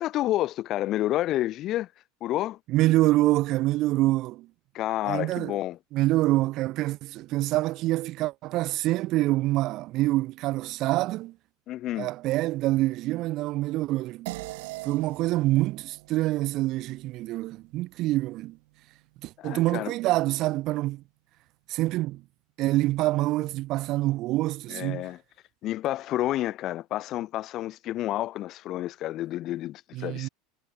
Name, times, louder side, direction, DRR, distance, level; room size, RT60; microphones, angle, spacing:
voice 1, 0.0-1.9 2.2-2.6 4.7-5.8 11.7-12.1 19.4-19.9 24.7-25.2 25.6-30.3, left 14 dB, 50° left, 1.0 m, -29 dB
voice 2, 2.7-4.5 5.1-5.5 5.9-11.3 12.0-14.3 14.8-18.6 19.2-21.0 21.7-22.2 22.6-25.1 29.9-30.3, right 17 dB, 55° right, 0.5 m, -26 dB
sound 1, 14.3-19.0, right 23 dB, 70° right, 2.1 m, -43 dB
hypercardioid pair, 95°, 0 cm